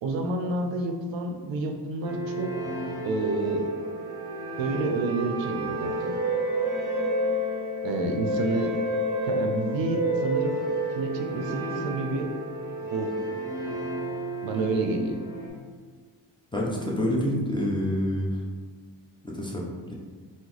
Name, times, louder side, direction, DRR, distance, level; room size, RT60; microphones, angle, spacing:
voice 1, 0.0-2.5 3.0-3.7 4.6-6.1 7.8-8.8 9.3-10.6 10.9-12.3 12.8-13.1 14.4-15.2, right 2 dB, 75° right, 4 dB, 0.5 m, -29 dB
sound 1, 2.0-15.5, right 1 dB, 5° right, 1.1 m, -30 dB
voice 2, 16.5-18.4 19.2-19.9, left 1 dB, 10° left, -3 dB, 0.8 m, -27 dB
3.6 x 2.1 x 3.1 m, 1.5 s
supercardioid pair, 45°, 45 cm